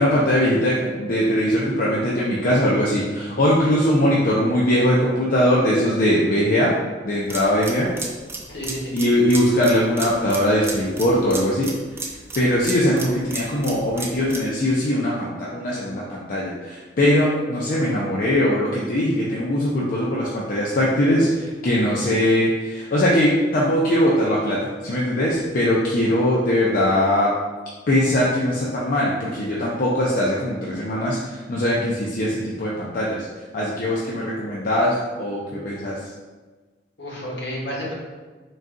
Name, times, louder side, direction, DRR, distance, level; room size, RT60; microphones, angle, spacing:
voice 1, 0.0-6.7 7.0-7.9 8.9-11.7 12.3-27.3 27.9-31.2 31.5-33.2 33.5-36.0, left 1 dB, 50° left, -5 dB, 0.5 m, -21 dB
sound 1, 7.3-14.5, right 3 dB, 15° right, 0.4 m, -34 dB
voice 2, 8.5-9.0 37.0-37.9, equal, 70° left, -5 dB, 1.2 m, -31 dB
3.9 x 2.3 x 3.7 m, 1.3 s
head